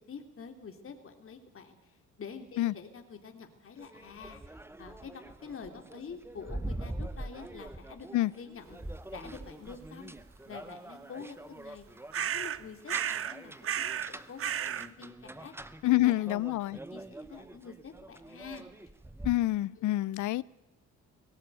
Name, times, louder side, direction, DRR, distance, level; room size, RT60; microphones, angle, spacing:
voice 1, 0.1-8.8 9.1-10.2 10.4-11.8 12.1-15.5 15.8-16.3 16.9-18.7 19.8-19.9, left 5 dB, 45° left, 3.0 m, -47 dB
sound 1, 3.8-19.4, right 1 dB, 10° right, 1.0 m, -44 dB
sound 2, 12.1-12.6 12.9-13.4 13.6-14.1 14.4-14.9, right 9 dB, 45° right, 0.8 m, -32 dB
voice 2, 15.8-16.8 19.2-20.4, left 16 dB, 75° left, 0.6 m, -27 dB
18.0 x 18.0 x 9.1 m
cardioid pair, 90°, 30 cm